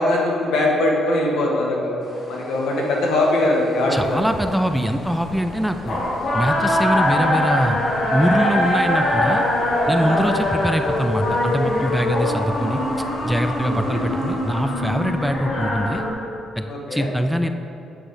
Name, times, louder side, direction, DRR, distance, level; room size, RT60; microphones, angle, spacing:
voice 1, 0.0-2.0 2.3-4.2 10.1-10.3 13.6-14.0 16.7-17.1, left 1 dB, 75° left, -2 dB, 1.4 m, -21 dB
sound 1, 2.0-15.4, left 1 dB, 45° left, 1.7 m, -38 dB
sound 2, 3.9-16.1, left 1 dB, 60° left, 1.5 m, -23 dB
voice 2, 3.9-6.0 6.3-7.8 8.1-9.4 9.9-12.8 13.2-16.0 16.6-16.7 16.9-17.5, equal, ahead, 7 dB, 0.3 m, -23 dB
8.0 x 4.0 x 5.0 m, 2.7 s
cardioid pair, 90°, 0 cm